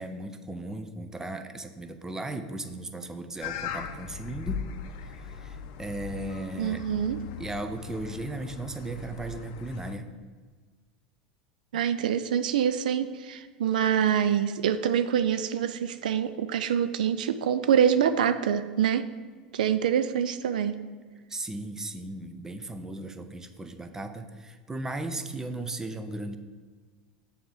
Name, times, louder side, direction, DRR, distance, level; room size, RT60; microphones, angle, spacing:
voice 1, 0.0-4.7 5.0-6.8 7.4-10.1 21.3-26.4, right 2 dB, 10° right, 8 dB, 0.6 m, -36 dB
sound 1, 3.4-10.0, left 7 dB, 60° left, 0.5 m, -39 dB
voice 2, 6.6-7.2 11.7-19.1 19.5-20.7, right 8 dB, 75° right, 11 dB, 0.3 m, -25 dB
7.1 x 3.5 x 6.3 m, 1.5 s
hypercardioid pair, 85°, 4 cm